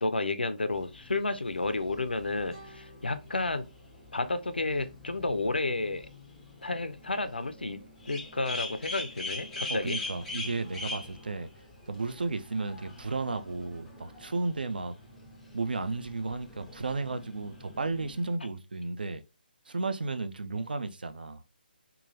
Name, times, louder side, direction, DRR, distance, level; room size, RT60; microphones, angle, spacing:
voice 1, 0.0-3.7 4.1-6.1 6.6-7.8 8.1-10.0, left 2 dB, 75° left, 0.4 m, -31 dB
sound 1, 0.7-18.3, left 3 dB, 5° left, 0.4 m, -44 dB
sound 2, 2.5-5.5, right 2 dB, 30° right, 1.0 m, -56 dB
voice 2, 9.7-11.5 11.9-14.9 15.5-19.2 19.7-21.4, right 3 dB, 65° right, 0.3 m, -33 dB
3.0 x 2.3 x 2.6 m
figure-of-eight pair, 140°, 5 cm